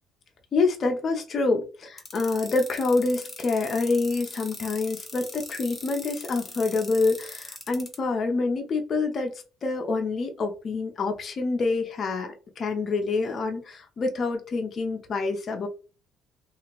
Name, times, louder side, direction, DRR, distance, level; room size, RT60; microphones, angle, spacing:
voice 1, 0.5-15.7, left 3 dB, 45° left, 3 dB, 0.5 m, -27 dB
sound 1, 2.0-8.0, left 2 dB, 15° left, 1.0 m, -40 dB
2.8 x 2.5 x 3.0 m, 0.34 s
cardioid pair, 85°, 0 cm